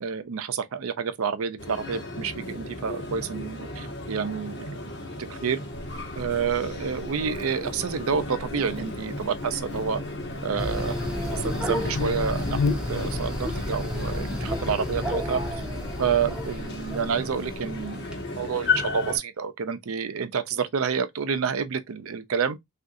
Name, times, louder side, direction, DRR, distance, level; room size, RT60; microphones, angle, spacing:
voice 1, 0.0-4.7 5.3-5.6 6.2-10.0 10.4-11.0 11.3-12.6 12.9-15.4 16.0-18.1 18.4-22.6, right 6 dB, 80° right, 0.5 m, -29 dB
sound 1, 1.6-19.2, left 2 dB, 50° left, 0.9 m, -34 dB
Buzz, 5.7-17.8, left 4 dB, 75° left, 0.3 m, -37 dB
sound 2, 10.6-18.2, left 1 dB, 5° right, 0.6 m, -32 dB
3.5 x 2.5 x 2.5 m
head